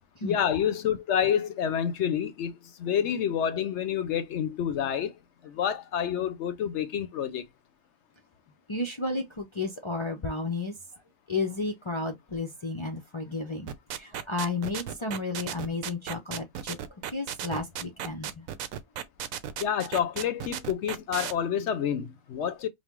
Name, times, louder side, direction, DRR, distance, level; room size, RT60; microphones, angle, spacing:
voice 1, 0.2-5.1 5.4-7.5 19.6-22.7, left 8 dB, 70° left, 0.8 m, -28 dB
voice 2, 8.7-10.8 11.3-16.8 17.1-18.5, left 3 dB, 40° left, 0.4 m, -32 dB
sound 1, 13.7-21.3, right 9 dB, 90° right, 1.0 m, -35 dB
5.5 x 2.1 x 3.0 m
omnidirectional pair, 1.4 m